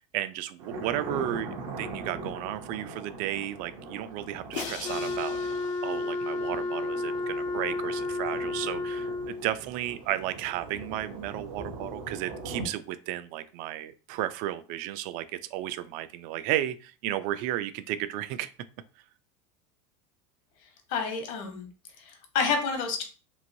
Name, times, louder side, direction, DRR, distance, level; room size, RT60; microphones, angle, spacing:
voice 1, 0.0-5.6 5.8-18.5, right 13 dB, 60° right, 12 dB, 0.4 m, -33 dB
Thunder, 0.6-12.7, right 3 dB, 75° right, 0.7 m, -41 dB
Crash cymbal, 4.5-6.7, left 8 dB, 80° left, 0.5 m, -41 dB
Wind instrument woodwind instrument, 4.8-9.5, left 3 dB, 30° left, 0.5 m, -32 dB
voice 2, 20.9-21.7 22.0-23.0, left 5 dB, 60° left, 5 dB, 1.0 m, -29 dB
3.1 x 2.5 x 2.6 m, 0.36 s
supercardioid pair, 100°, 16 cm